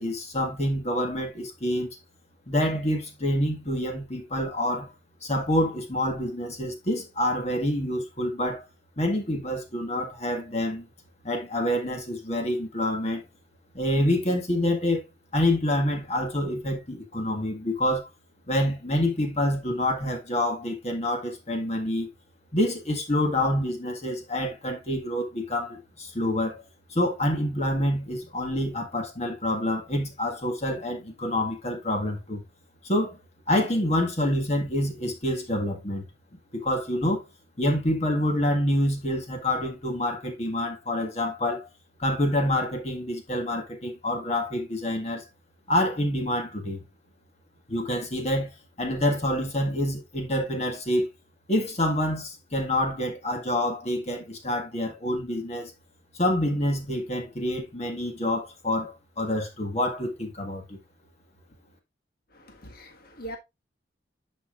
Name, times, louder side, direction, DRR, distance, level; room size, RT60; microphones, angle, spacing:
voice 1, 0.0-1.9 2.5-4.9 5.2-8.6 9.0-10.9 11.2-13.2 13.7-15.0 15.3-18.1 18.5-22.1 22.5-32.4 32.8-33.2 33.5-36.0 36.5-37.2 37.6-41.7 42.0-45.2 45.7-46.8 47.7-51.1 51.5-55.7 56.1-60.8, left 1 dB, 35° left, 1.7 m, -27 dB
voice 2, 62.5-63.4, right 1 dB, 50° left, 1.6 m, -41 dB
10.0 x 5.7 x 2.5 m
head